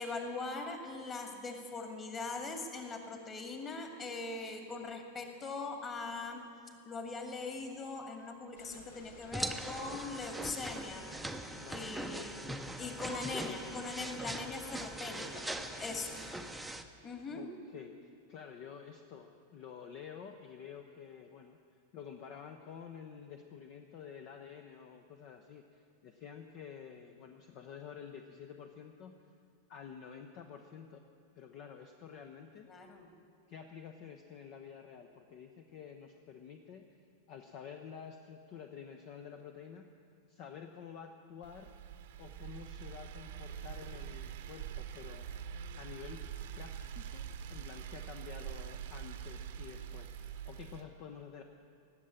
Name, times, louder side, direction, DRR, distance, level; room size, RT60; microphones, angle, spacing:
voice 1, 0.0-12.4 12.8-15.4 15.8-16.2 17.0-17.4 32.7-33.1, left 3 dB, 25° left, 4 dB, 2.1 m, -41 dB
sound 1, 8.6-16.7, left 3 dB, 60° left, 1.7 m, -55 dB
sound 2, 9.3-16.8, right 1 dB, 5° right, 0.8 m, -41 dB
voice 2, 11.6-11.9 17.3-29.3 29.7-31.0 31.3-32.7 33.5-41.8 42.2-45.4 45.7-46.2 46.6-51.4, left 7 dB, 40° left, 6 dB, 0.8 m, -50 dB
sound 3, 41.4-50.8, right 9 dB, 55° right, 1.0 m, -44 dB
18.0 x 7.5 x 9.9 m, 2.4 s
figure-of-eight pair, 90°, 0 cm